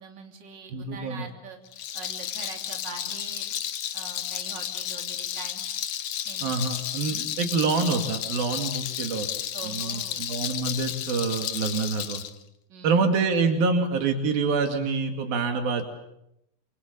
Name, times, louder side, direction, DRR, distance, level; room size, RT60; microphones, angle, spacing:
voice 1, 0.0-1.6 1.9-3.5 3.9-5.6 6.2-6.5 7.1-7.3 9.5-10.3 12.7-13.1, right 5 dB, 30° right, 3 dB, 3.4 m, -43 dB
voice 2, 0.7-1.3 6.4-9.3 9.6-12.2 12.8-15.8, right 4 dB, 85° right, 5 dB, 4.2 m, -26 dB
Rattle, 1.7-12.3, left 11 dB, 65° left, 1.8 m, -32 dB
27.0 x 25.5 x 6.9 m, 0.80 s
omnidirectional pair, 4.1 m